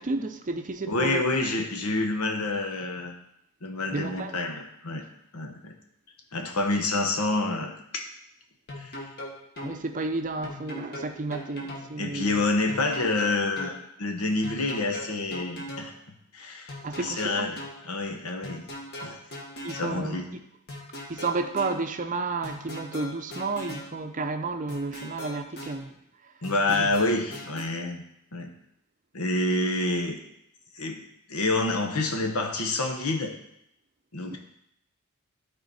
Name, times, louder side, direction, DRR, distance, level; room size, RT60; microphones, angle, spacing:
voice 1, 0.0-1.2 3.9-4.4 9.6-12.3 16.8-17.5 19.0-19.2 19.6-20.2 21.1-26.0 26.7-26.9 34.3-34.4, right 3 dB, 35° right, 7 dB, 0.6 m, -32 dB
voice 2, 0.9-3.1 3.6-5.0 5.3-5.7 6.3-8.1 8.8-9.0 12.0-15.9 16.3-17.6 17.8-18.6 19.0-19.2 19.7-20.3 26.4-28.0 28.3-28.5 29.1-30.2 30.7-31.0 31.3-33.3 34.1-34.4, left 2 dB, 90° left, 3 dB, 1.3 m, -28 dB
sound 1, 8.7-9.7 10.4-11.9 12.7-13.8 14.4-15.9 16.7-17.8 18.4-19.9 20.7-21.8 22.4-23.9 24.7-25.8 26.4-27.6, left 1 dB, 45° left, 1.7 m, -39 dB
12.5 x 4.2 x 4.2 m, 0.76 s
head